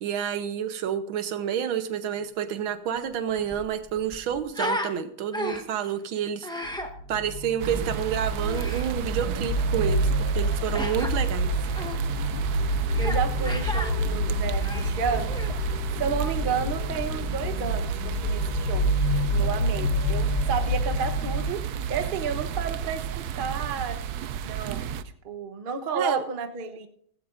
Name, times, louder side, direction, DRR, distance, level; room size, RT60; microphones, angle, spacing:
voice 1, 0.0-6.5 7.1-11.5 25.9-26.2, right 9 dB, 90° right, 10 dB, 1.8 m, -29 dB
Human voice, 3.0-3.1 3.3-4.9 5.3-5.8 6.4-6.9 8.4-8.9 10.7-11.1 11.7-12.0 12.9-13.2 13.4-13.9 14.5-15.6, left 1 dB, 5° left, 0.7 m, -34 dB
sound 1, 6.7-21.6, equal, 65° left, 1.3 m, -28 dB
sound 2, 7.6-25.0, right 8 dB, 70° right, 1.0 m, -32 dB
voice 2, 13.0-15.4 16.0-18.9 19.3-21.6 21.9-24.0 24.4-24.9 25.2-26.9, right 5 dB, 35° right, 6 dB, 0.9 m, -31 dB
17.0 x 15.5 x 2.6 m, 0.67 s
omnidirectional pair, 2.1 m